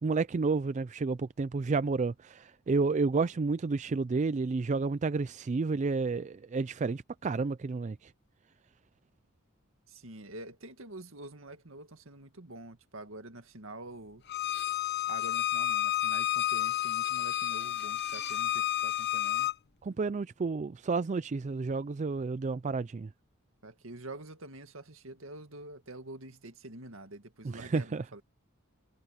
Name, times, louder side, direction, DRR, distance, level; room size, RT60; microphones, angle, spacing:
voice 1, 0.0-8.1 19.8-23.1 27.5-28.0, right 4 dB, 35° right, 0.4 m, -31 dB
voice 2, 9.9-14.2 15.1-19.6 23.6-28.2, right 2 dB, 75° right, 2.1 m, -46 dB
Bowed string instrument, 14.3-19.5, left 12 dB, 55° left, 0.9 m, -30 dB
head